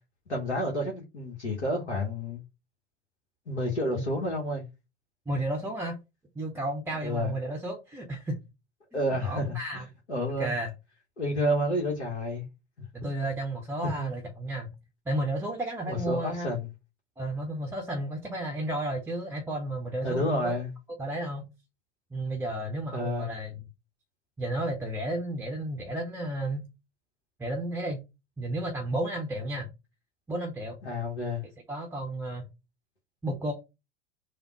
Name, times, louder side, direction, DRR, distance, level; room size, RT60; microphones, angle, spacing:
voice 1, 0.3-2.4 3.5-4.6 7.0-7.4 8.9-10.5 11.2-12.5 14.0-14.1 15.9-16.7 20.0-20.7 22.9-23.3 30.8-31.4, left 1 dB, 75° left, 1.2 m, -30 dB
voice 2, 5.3-6.0 6.4-8.4 8.9-9.8 10.4-10.7 12.9-14.7 15.1-16.5 17.2-20.5 21.0-21.5 22.1-23.6 24.4-26.6 27.4-28.0 28.4-29.7 30.3-30.8 31.7-32.5 33.2-33.5, right 1 dB, 5° right, 0.5 m, -32 dB
3.4 x 2.2 x 4.3 m
figure-of-eight pair, 85°, 34 cm